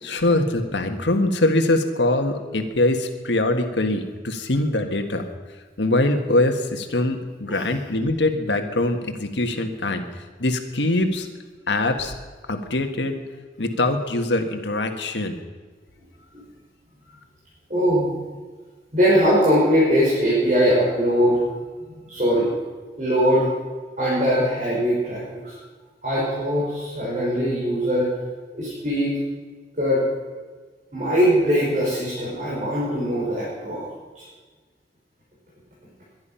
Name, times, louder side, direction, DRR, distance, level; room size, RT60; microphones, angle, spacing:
voice 1, 0.0-5.3 5.8-10.1 10.4-11.3 11.7-12.1 12.5-13.2 13.6-15.4, left 2 dB, 85° left, 5 dB, 1.7 m, -23 dB
voice 2, 17.7-18.1 18.9-21.4 22.1-22.5 23.0-23.5 24.0-25.5 26.0-28.1 28.5-29.1 29.8-30.0 30.9-33.8, equal, 45° right, -7 dB, 5.4 m, -21 dB
22.0 x 11.0 x 5.7 m, 1.4 s
head